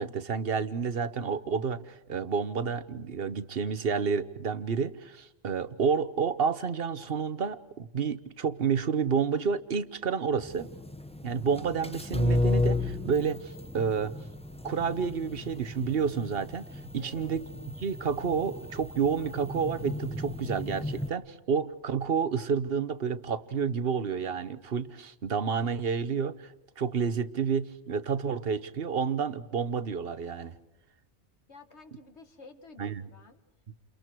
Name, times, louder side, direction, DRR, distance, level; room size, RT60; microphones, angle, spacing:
voice 1, 0.0-10.7 11.2-14.1 14.6-16.6 16.9-17.5 17.8-30.6 32.8-33.0, right 6 dB, 55° right, 14 dB, 1.2 m, -30 dB
sound 1, 10.4-21.1, left 1 dB, 5° left, 0.7 m, -34 dB
voice 2, 17.0-17.3 31.5-33.4, left 3 dB, 70° left, 6 dB, 2.2 m, -52 dB
29.5 x 29.0 x 4.6 m, 0.92 s
omnidirectional pair, 1.2 m